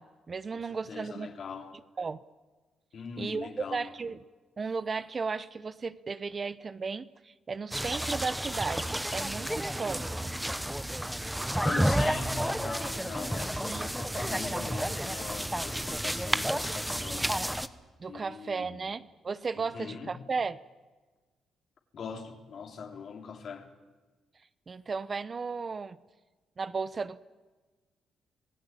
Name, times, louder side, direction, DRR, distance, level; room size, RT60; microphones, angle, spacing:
voice 1, 0.0-1.3 2.0-2.2 3.2-4.2 4.6-10.3 13.7-13.8 18.0-20.6 24.7-26.0 26.6-27.2, right 4 dB, 35° right, 15 dB, 0.9 m, -35 dB
voice 2, 0.6-1.7 2.9-3.9 11.6-17.3 18.1-18.9 19.6-20.1 21.9-23.7, left 6 dB, 55° left, 4 dB, 3.5 m, -41 dB
sound 1, 7.7-17.7, equal, 5° right, 1.1 m, -31 dB
27.0 x 17.0 x 9.0 m, 1.3 s
cardioid pair, 90°, 0 cm